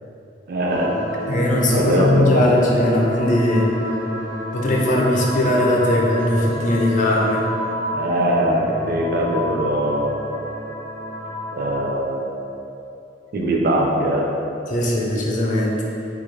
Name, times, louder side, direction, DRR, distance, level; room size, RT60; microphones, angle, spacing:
voice 1, 0.5-0.9 1.8-2.5 7.9-10.2 11.5-12.4 13.3-14.3, right 1 dB, 55° right, 0 dB, 0.4 m, -21 dB
sound 1, 0.7-11.9, equal, 90° right, 0.9 m, -30 dB
voice 2, 1.3-3.7 4.5-7.5 14.7-15.8, left 1 dB, 45° left, -2 dB, 0.5 m, -19 dB
4.0 x 2.4 x 3.2 m, 2.8 s
head